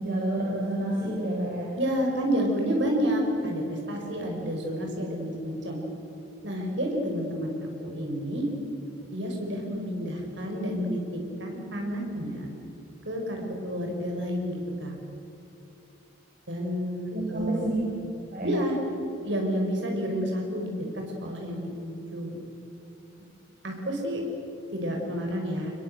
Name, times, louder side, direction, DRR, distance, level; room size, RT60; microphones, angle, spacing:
voice 1, 0.0-1.7 4.1-4.3 17.1-17.8 18.3-18.5, right 1 dB, 45° right, -4 dB, 5.0 m, -29 dB
voice 2, 1.8-5.8 6.4-7.5 7.8-8.5 9.1-11.0 11.4-12.5 13.1-14.9 16.5-17.8 18.4-18.8 19.2-22.4 23.6-24.2 24.7-25.7, equal, 65° right, 1 dB, 5.6 m, -30 dB
25.0 x 21.5 x 8.0 m, 2.9 s
head